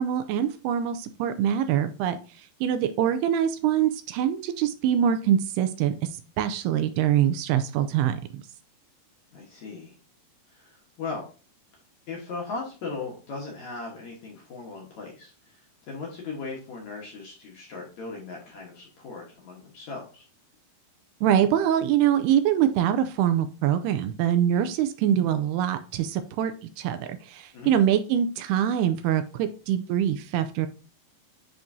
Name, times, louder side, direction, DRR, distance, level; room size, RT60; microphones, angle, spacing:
voice 1, 0.0-2.2 2.6-5.9 6.4-8.2 21.2-30.7, right 10 dB, 80° right, 9 dB, 2.5 m, -24 dB
voice 2, 9.3-10.0 10.5-11.3 12.1-15.6 15.9-20.3 27.5-27.7, left 4 dB, 60° left, -2 dB, 2.1 m, -38 dB
10.5 x 3.7 x 2.7 m, 0.36 s
omnidirectional pair, 4.7 m